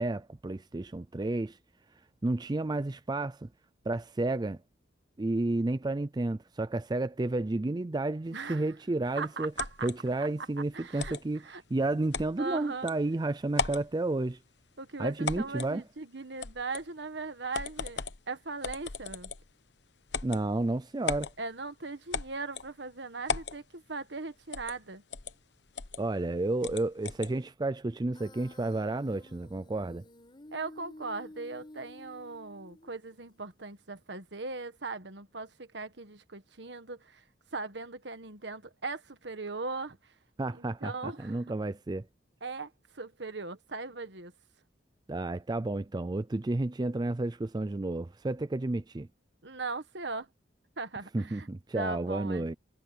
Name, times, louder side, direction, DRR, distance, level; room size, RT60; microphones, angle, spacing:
voice 1, 0.0-1.6 2.2-3.5 3.9-4.6 5.2-9.5 9.8-11.4 11.7-14.4 15.0-15.8 20.2-21.3 26.0-30.0 40.4-42.1 45.1-49.1 51.1-52.6, right 2 dB, 25° right, 0.4 m, -31 dB
voice 2, 8.3-8.6 9.1-9.9 10.2-10.3 10.7-11.6 12.4-12.9 14.8-18.0 18.3-19.3 21.4-25.0 30.5-37.2 37.5-40.1 40.5-41.4 42.4-44.3 49.4-50.3 50.8-51.5 51.7-52.5, right 3 dB, 70° right, 1.6 m, -39 dB
sound 1, 9.6-10.0 11.0-11.2 12.1-12.3 12.9-13.0 13.5-13.9 15.2-15.7 16.4-16.9 17.5-18.2 18.6-19.5 20.1-20.4 21.1-21.3 22.1-22.7 23.3-23.6 24.5-24.8 25.1-25.3 25.8-26.0 26.6-27.3, left 5 dB, 65° left, 1.1 m, -35 dB
Human voice, 28.1-33.1, left 1 dB, 25° left, 4.2 m, -52 dB
head